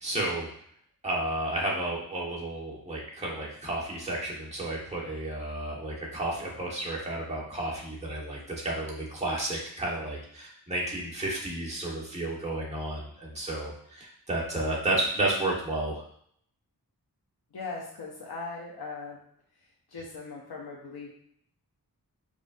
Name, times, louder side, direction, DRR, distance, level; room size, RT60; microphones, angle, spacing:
voice 1, 0.0-0.5 1.0-16.0, right 1 dB, 15° right, -5 dB, 1.2 m, -32 dB
voice 2, 17.5-19.2 19.9-21.1, left 3 dB, 85° left, -2 dB, 0.7 m, -39 dB
5.2 x 2.5 x 2.5 m, 0.65 s
wide cardioid pair, 75°, 37 cm